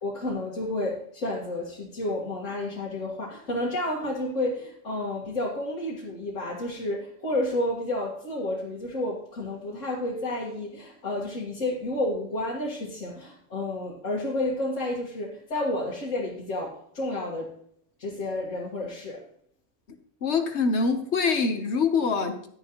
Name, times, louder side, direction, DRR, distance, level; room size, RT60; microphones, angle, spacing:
voice 1, 0.0-17.5 18.0-19.2, left 1 dB, 80° left, -5 dB, 2.1 m, -31 dB
voice 2, 20.2-22.5, left 4 dB, 65° left, 7 dB, 1.3 m, -24 dB
12.0 x 10.0 x 3.0 m, 0.63 s
omnidirectional pair, 1.3 m